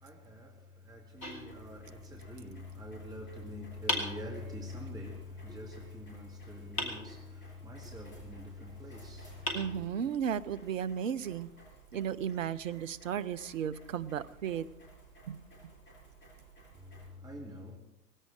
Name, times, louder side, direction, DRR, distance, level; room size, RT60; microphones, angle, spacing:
voice 1, 0.0-9.6 16.8-17.8, left 2 dB, 10° right, 2.1 m, -45 dB
sound 1, 1.2-2.2 3.9-4.9 6.8-7.7 8.9-9.0 9.5-10.4, left 1 dB, 75° left, 3.5 m, -39 dB
sound 2, 1.2-17.1, right 3 dB, 25° left, 7.4 m, -56 dB
voice 2, 9.5-11.5 11.9-14.7 15.3-15.4, right 8 dB, 60° right, 0.8 m, -34 dB
19.5 x 16.5 x 3.8 m
figure-of-eight pair, 100°, 44 cm